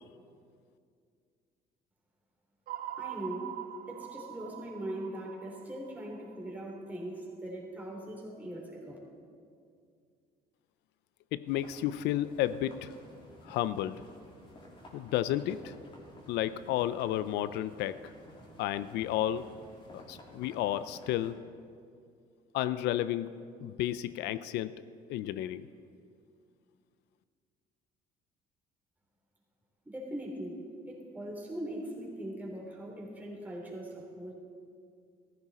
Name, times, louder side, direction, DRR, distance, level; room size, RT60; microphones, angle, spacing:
sound 1, 2.7-6.9, right 12 dB, 60° right, 0.8 m, -43 dB
voice 1, 3.0-3.5 3.9-9.0 29.9-34.3, right 1 dB, 10° right, -3 dB, 3.5 m, -40 dB
voice 2, 11.3-12.9 13.4-14.0 14.9-15.7 16.3-18.1 18.6-19.5 19.9-21.5 22.5-24.8 25.1-25.7, left 12 dB, 85° left, 14 dB, 0.4 m, -32 dB
sound 2, 11.5-21.3, left 1 dB, 30° left, 3.1 m, -53 dB
15.0 x 14.0 x 4.2 m, 2.3 s
cardioid pair, 110°, 17 cm